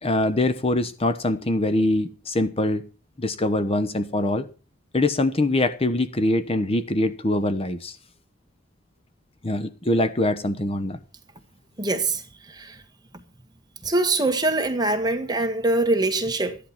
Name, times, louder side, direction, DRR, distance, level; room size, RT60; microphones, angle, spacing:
voice 1, 0.0-2.8 3.2-4.5 4.9-7.9 9.4-11.0, left 1 dB, 30° left, 1.0 m, -23 dB
voice 2, 11.8-12.8 13.8-16.6, right 2 dB, 20° right, 1.9 m, -23 dB
14.0 x 10.5 x 5.8 m
head